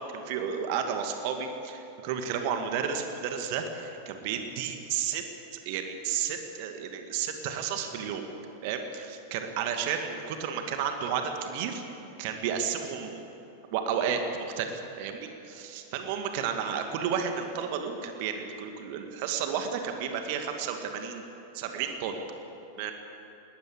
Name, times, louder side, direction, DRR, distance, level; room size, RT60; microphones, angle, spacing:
voice 1, 0.1-5.3 5.7-8.2 8.6-11.8 12.2-13.2 13.7-14.2 14.6-21.2 21.5-22.2 22.8-22.9, right 7 dB, 45° right, 5 dB, 2.1 m, -32 dB
20.5 x 20.0 x 8.0 m, 2.9 s
figure-of-eight pair, 90°, 0 cm